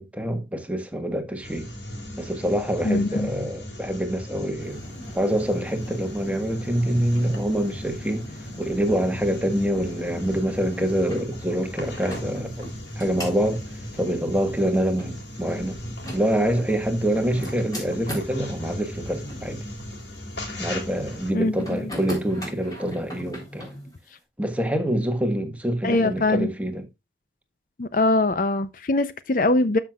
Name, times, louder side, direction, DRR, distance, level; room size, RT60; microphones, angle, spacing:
voice 1, 0.0-1.7 2.2-4.8 5.1-8.3 8.6-12.7 13.0-13.6 13.9-15.8 16.1-19.6 20.6-23.7 24.4-26.8, equal, 10° right, 1.4 m, -25 dB
sound 1, 1.4-21.3, left 1 dB, 85° left, 3.9 m, -37 dB
voice 2, 2.8-3.3 21.3-21.9 25.8-26.5 27.8-29.8, left 2 dB, 50° left, 0.6 m, -22 dB
sound 2, 4.6-18.4 19.1-19.5 21.6-24.0, equal, 20° left, 3.5 m, -40 dB
13.0 x 6.0 x 2.3 m
head